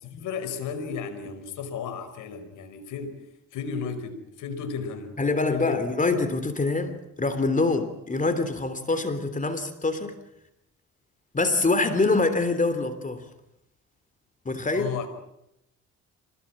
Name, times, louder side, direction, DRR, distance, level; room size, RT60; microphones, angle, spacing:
voice 1, 0.0-3.2 3.5-5.2 5.5-5.8 14.7-15.1, left 6 dB, 85° left, 5.2 m, -34 dB
voice 2, 5.2-10.2 11.3-13.2 14.4-14.9, left 3 dB, 25° left, 3.3 m, -25 dB
27.0 x 20.5 x 8.9 m
cardioid pair, 90°, 30 cm